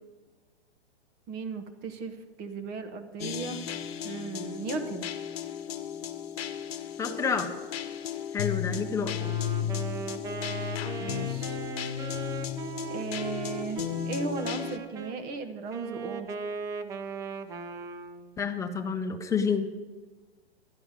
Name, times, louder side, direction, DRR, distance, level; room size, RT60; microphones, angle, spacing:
voice 1, 1.3-3.6 4.0-5.1 11.0-11.6 12.9-16.3, right 4 dB, 30° right, 9 dB, 1.2 m, -36 dB
sound 1, 3.2-14.8, left 9 dB, 70° left, 1.0 m, -34 dB
voice 2, 7.0-7.5 8.3-9.1 18.4-19.7, left 6 dB, 10° left, 4 dB, 0.9 m, -29 dB
Wind instrument woodwind instrument, 9.0-15.2 15.7-18.3, right 5 dB, 10° right, 0.3 m, -38 dB
11.5 x 9.5 x 5.1 m, 1.3 s
hypercardioid pair, 115°, 32 cm